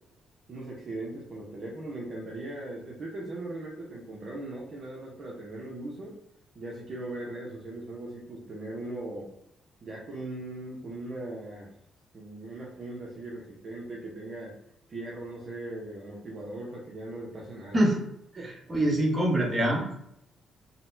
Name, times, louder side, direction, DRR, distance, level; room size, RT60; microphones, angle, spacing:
voice 1, 0.5-6.2 6.5-9.3 9.8-11.7 12.1-14.5 14.9-17.8 18.4-18.5, right 2 dB, 50° right, -4 dB, 0.7 m, -39 dB
voice 2, 18.7-19.9, right 1 dB, 25° right, -2 dB, 1.1 m, -24 dB
4.0 x 2.1 x 2.6 m, 0.76 s
cardioid pair, 90°, 0 cm